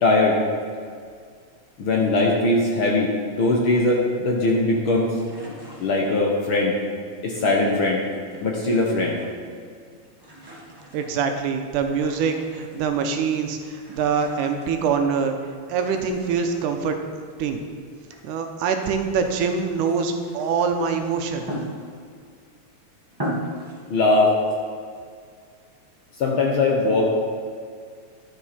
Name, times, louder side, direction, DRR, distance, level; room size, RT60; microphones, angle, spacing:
voice 1, 0.0-0.4 1.8-5.5 5.8-6.7 7.2-8.0 8.4-9.2 23.9-24.3 26.2-27.2, left 2 dB, 65° left, -2 dB, 1.3 m, -20 dB
sound 1, 5.1-6.4 7.3-8.8 9.0-9.7 9.9-13.0 13.7-15.3 15.7-18.3 18.7-22.2 22.7-22.8 23.1-23.8, equal, 35° right, 0.4 m, -39 dB
voice 2, 10.9-15.3 15.7-17.0 17.4-17.6 18.2-21.5, right 6 dB, 90° right, 5 dB, 2.3 m, -24 dB
12.0 x 7.1 x 4.2 m, 2.1 s
omnidirectional pair, 3.6 m